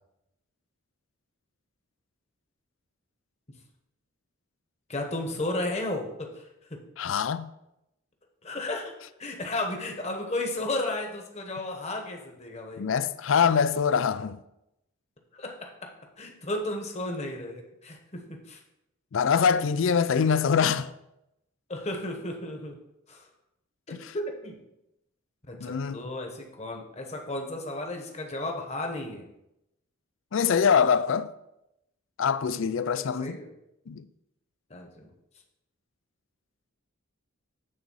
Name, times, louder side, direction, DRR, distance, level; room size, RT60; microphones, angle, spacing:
voice 1, 4.9-6.8 8.4-8.9 9.2-12.9 15.3-15.9 16.2-18.6 21.7-22.8 23.1-23.3 24.1-24.6 25.5-29.3 32.9-33.5 34.7-35.1, left 2 dB, 30° left, 1.1 m, -34 dB
voice 2, 7.0-7.5 12.8-14.4 19.1-20.9 25.6-26.1 30.3-31.3 32.2-33.4 33.9-34.0, left 6 dB, 60° left, 0.4 m, -24 dB
8.8 x 3.9 x 5.4 m
head